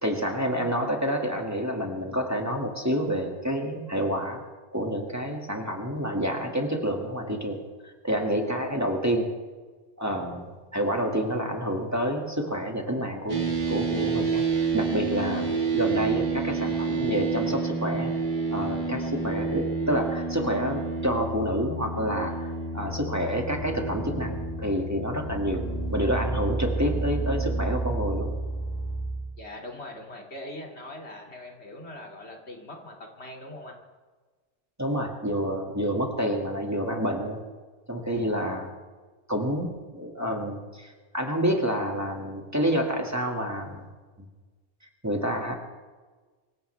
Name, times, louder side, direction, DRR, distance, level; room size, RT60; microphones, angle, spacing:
voice 1, 0.0-4.4 4.7-7.6 7.8-9.3 10.0-18.1 18.5-25.6 25.9-28.3 34.8-37.4 37.9-38.7 39.3-43.9 45.0-45.5, equal, 15° right, 1 dB, 2.1 m, -28 dB
sound 1, 13.3-28.3, right 4 dB, 45° right, 1.8 m, -30 dB
sound 2, 23.5-24.7 25.2-29.3, right 2 dB, 35° left, 3.3 m, -31 dB
voice 2, 29.4-33.8, left 1 dB, 70° left, 0 dB, 2.8 m, -41 dB
25.0 x 16.0 x 3.4 m, 1.4 s
omnidirectional pair, 1.1 m